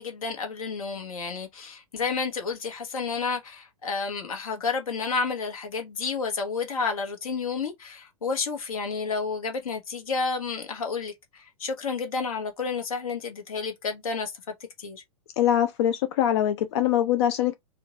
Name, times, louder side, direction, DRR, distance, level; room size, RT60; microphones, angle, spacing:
voice 1, 0.0-14.3 14.8-15.0, left 5 dB, 60° left, 1.3 m, -30 dB
voice 2, 15.4-17.5, left 10 dB, 45° left, 0.5 m, -23 dB
4.4 x 2.4 x 4.0 m
figure-of-eight pair, 105°, 20 cm